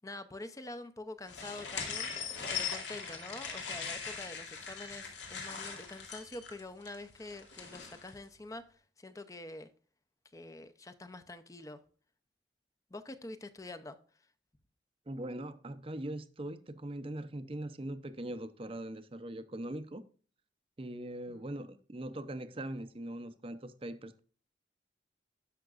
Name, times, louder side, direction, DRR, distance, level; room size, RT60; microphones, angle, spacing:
voice 1, 0.0-2.1 2.5-9.7 10.3-11.8 12.9-14.0 21.3-21.5, left 2 dB, 20° left, 0.6 m, -46 dB
sound 1, 1.3-8.1, left 6 dB, 90° left, 2.4 m, -40 dB
voice 2, 15.1-20.0 20.8-24.2, right 1 dB, 30° right, 0.6 m, -41 dB
12.5 x 5.8 x 2.5 m
head